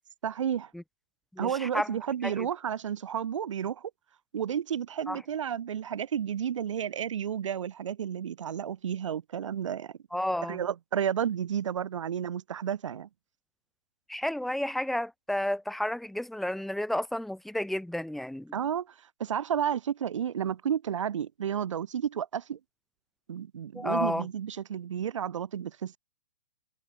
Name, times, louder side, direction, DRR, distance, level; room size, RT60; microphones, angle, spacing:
voice 1, 0.2-0.7 1.4-3.9 4.3-9.9 10.5-13.1 18.5-18.9 19.2-22.6 23.3-26.0, right 8 dB, 60° right, 0.5 m, -31 dB
voice 2, 1.3-2.5 5.1-5.2 10.1-10.6 14.1-18.5 23.7-24.3, left 1 dB, ahead, 0.8 m, -32 dB
figure-of-eight pair, 125°, 18 cm